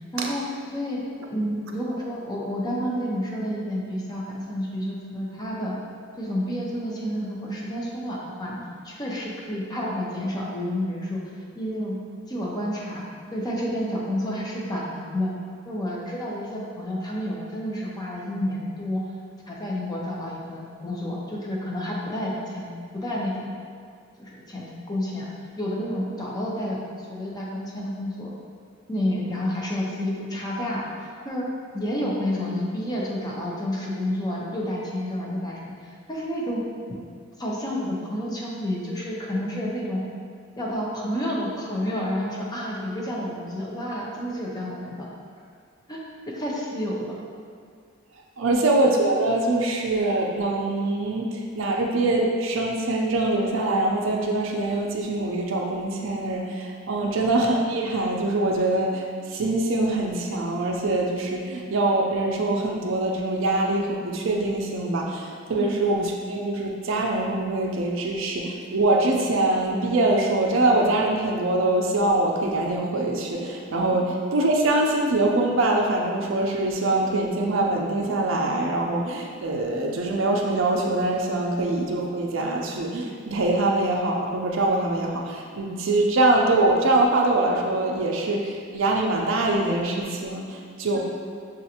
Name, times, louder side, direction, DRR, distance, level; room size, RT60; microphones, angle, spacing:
voice 1, 0.1-0.4 0.7-1.0 1.3-5.8 6.2-11.2 11.5-12.0 12.3-13.0 13.3-15.3 15.7-19.0 19.5-23.5 24.2-25.3 25.6-28.3 28.9-30.9 31.2-31.4 31.7-35.6 36.1-36.6 37.4-40.0 40.6-45.1 45.9-46.0 46.3-47.2 57.0-57.1 65.6-65.7 73.9-74.0, equal, 20° left, -4 dB, 0.6 m, -30 dB
voice 2, 48.4-91.0, right 2 dB, 70° right, 0 dB, 0.5 m, -24 dB
6.3 x 2.5 x 2.8 m, 2.2 s
head